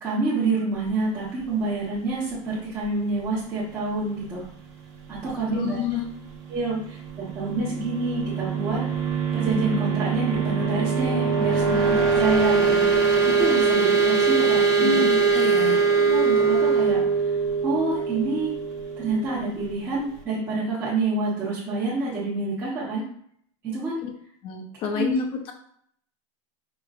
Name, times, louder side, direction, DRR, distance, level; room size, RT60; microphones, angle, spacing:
voice 1, 0.0-4.4 5.1-5.8 6.5-8.8 9.3-12.9 13.2-15.0 16.0-17.0 17.6-18.5 19.0-23.0 23.6-24.0 24.9-25.1, right 3 dB, 15° right, -8 dB, 1.1 m, -27 dB
voice 2, 5.5-6.0 14.8-15.8 24.0-24.1 24.4-25.5, left 6 dB, 35° left, 3 dB, 0.7 m, -28 dB
sound 1, 7.3-19.8, right 5 dB, 60° right, 1.2 m, -22 dB
5.1 x 3.0 x 2.4 m, 0.65 s
supercardioid pair, 160°, 16 cm